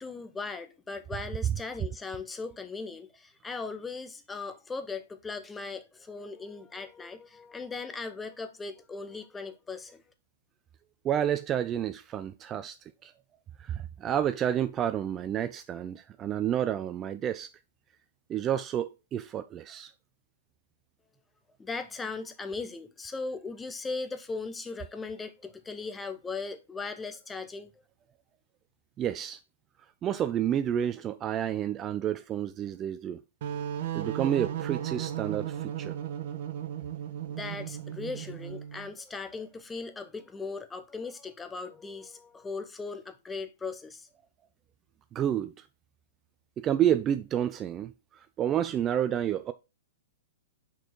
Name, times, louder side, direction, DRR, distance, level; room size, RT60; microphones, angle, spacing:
voice 1, 0.0-10.0 21.6-27.7 37.3-44.1, left 4 dB, 10° left, 0.8 m, -38 dB
voice 2, 11.0-12.8 13.0-13.1 13.6-17.5 18.3-19.9 29.0-29.4 30.0-33.2 33.9-35.9 45.1-45.7 46.6-49.5, right 10 dB, 25° right, 0.3 m, -30 dB
sound 1, 33.4-38.9, right 10 dB, 50° right, 0.8 m, -35 dB
5.9 x 4.2 x 4.5 m
figure-of-eight pair, 110°, 0 cm